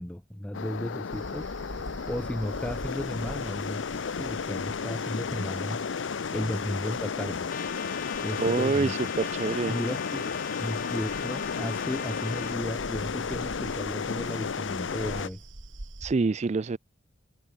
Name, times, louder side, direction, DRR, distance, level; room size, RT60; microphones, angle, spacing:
voice 1, 0.0-1.5 2.1-5.8 6.3-7.5 8.2-9.1 9.7-10.3 10.6-15.5, equal, 5° left, 0.6 m, -34 dB
sound 1, 0.5-15.3, left 5 dB, 75° left, 0.6 m, -33 dB
sound 2, 1.1-16.1, right 2 dB, 85° right, 1.8 m, -47 dB
Trumpet, 7.5-12.6, left 7 dB, 45° left, 1.4 m, -39 dB
voice 2, 8.4-9.8 16.0-16.8, right 4 dB, 35° right, 0.4 m, -26 dB
head